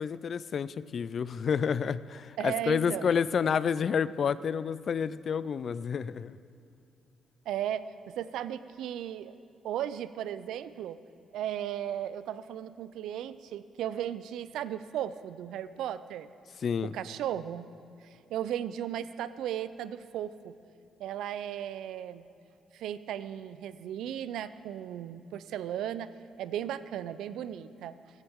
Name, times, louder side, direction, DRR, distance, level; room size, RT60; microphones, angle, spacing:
voice 1, 0.0-6.4 16.6-16.9, left 7 dB, 50° left, 17 dB, 0.4 m, -29 dB
voice 2, 2.4-3.1 7.5-9.4 9.6-11.0 11.3-16.3 16.8-17.7 18.0-20.6 21.0-22.2 22.7-26.1 26.4-28.0, right 10 dB, 85° right, 14 dB, 0.4 m, -36 dB
16.0 x 14.5 x 3.6 m, 2.6 s
cardioid pair, 90°, 0 cm